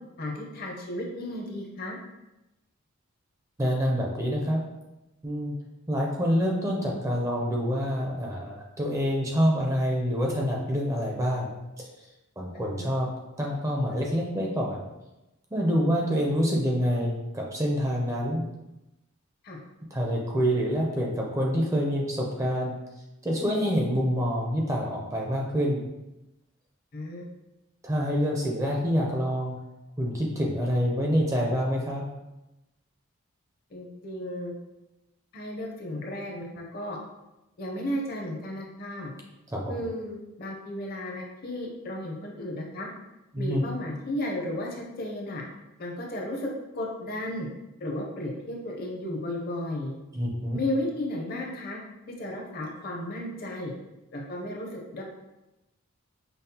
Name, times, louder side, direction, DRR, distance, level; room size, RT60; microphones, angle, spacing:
voice 1, 0.2-2.0 12.5-12.9 19.4-19.6 26.9-27.2 33.7-34.5 35.3-37.0 37.6-39.1 39.7-42.9 43.4-45.4 45.8-47.5 47.8-49.9 50.5-51.8 52.1-53.7 54.1-55.0, left 1 dB, 45° left, 0 dB, 0.6 m, -34 dB
voice 2, 3.6-4.6 5.2-5.5 5.9-11.5 12.4-13.1 13.4-14.8 15.5-18.4 19.9-22.7 23.2-25.8 27.8-29.6 30.0-32.0 39.5-39.8 43.3-43.6 50.1-50.6, equal, 15° right, -2 dB, 0.4 m, -26 dB
5.3 x 2.0 x 2.8 m, 0.97 s
head